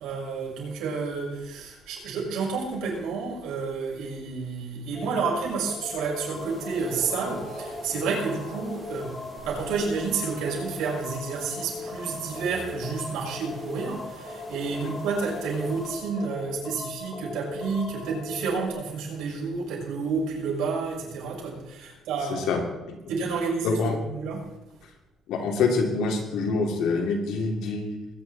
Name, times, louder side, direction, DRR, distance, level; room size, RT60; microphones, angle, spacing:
voice 1, 0.0-22.5 23.1-24.5, right 4 dB, 85° right, -3 dB, 6.1 m, -30 dB
sound 1, 4.9-18.7, left 2 dB, 20° left, 2.3 m, -39 dB
sound 2, 6.3-15.9, equal, 5° right, 6.5 m, -44 dB
voice 2, 22.3-22.6 23.6-24.0 25.3-28.0, left 4 dB, 85° left, 1 dB, 3.0 m, -25 dB
21.0 x 9.9 x 4.2 m, 0.98 s
cardioid pair, 135°, 0 cm